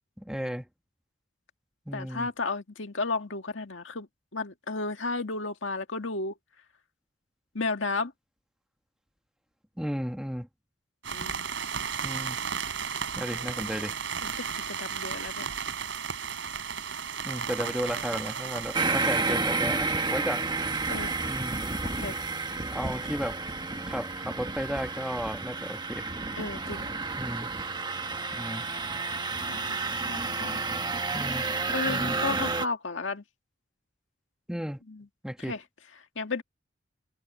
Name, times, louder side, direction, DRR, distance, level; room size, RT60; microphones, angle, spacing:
voice 1, 0.2-0.7 1.9-2.3 9.8-10.5 12.0-12.4 13.1-13.9 17.2-20.5 21.2-21.6 22.7-23.4 23.8-26.1 27.2-27.5 28.3-28.6 31.1-31.5 31.9-32.2 34.5-34.8 35.2-35.6, equal, 5° right, 1.7 m, -34 dB
voice 2, 1.9-4.1 4.3-6.3 7.5-8.1 11.1-11.5 14.2-15.5 20.9-21.3 21.8-22.2 26.3-26.9 29.5-29.8 30.1-30.7 31.7-33.2 34.9-35.1 35.4-35.6 36.2-36.4, left 3 dB, 75° left, 1.9 m, -33 dB
sound 1, 11.0-18.8, right 6 dB, 70° right, 4.2 m, -34 dB
sound 2, 18.7-32.7, right 3 dB, 20° right, 1.3 m, -31 dB
head